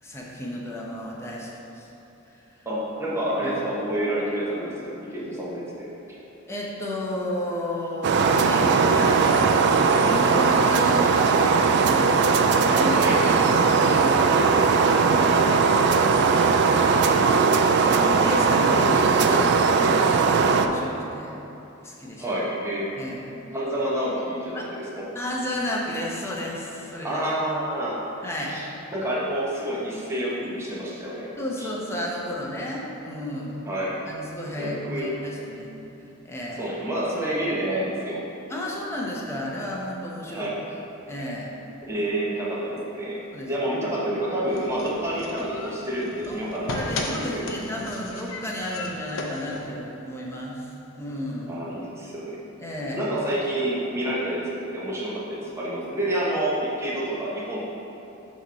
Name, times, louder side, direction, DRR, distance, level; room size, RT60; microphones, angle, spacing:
voice 1, 0.0-1.9 3.4-3.6 6.5-13.0 13.3-15.9 17.9-19.8 20.2-21.3 21.8-22.2 23.0-23.3 24.5-24.6 25.1-27.2 28.2-28.5 31.4-33.6 34.1-35.7 36.2-36.7 38.5-40.5 41.1-41.5 43.3-43.5 46.3-46.4 46.7-51.6 52.6-53.1, left 1 dB, 15° left, -4 dB, 0.8 m, -32 dB
voice 2, 2.6-5.9 12.9-13.2 18.7-18.8 22.2-22.9 23.5-25.0 27.0-28.0 28.5-31.3 31.6-31.7 33.7-33.9 34.6-35.1 36.6-38.2 40.2-40.6 41.9-43.2 43.5-47.4 51.5-52.4 52.9-57.6, right 1 dB, 15° right, -7 dB, 1.0 m, -28 dB
sound 1, 8.0-20.7, right 4 dB, 55° right, 0.3 m, -19 dB
sound 2, 44.5-49.7, left 2 dB, 75° left, 0.6 m, -35 dB
6.4 x 3.1 x 5.6 m, 2.9 s
head